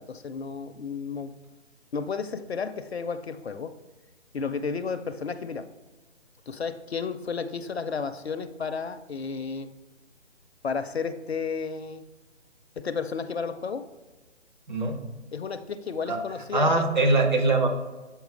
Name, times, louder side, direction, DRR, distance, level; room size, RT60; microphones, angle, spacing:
voice 1, 0.0-1.4 1.9-3.7 4.3-5.7 6.5-9.7 10.6-12.0 12.8-13.9 15.3-16.8, left 5 dB, 60° left, 11 dB, 0.5 m, -32 dB
voice 2, 16.5-17.7, right 2 dB, 40° right, 2 dB, 0.8 m, -22 dB
7.2 x 4.5 x 3.3 m, 1.2 s
figure-of-eight pair, 145°, 36 cm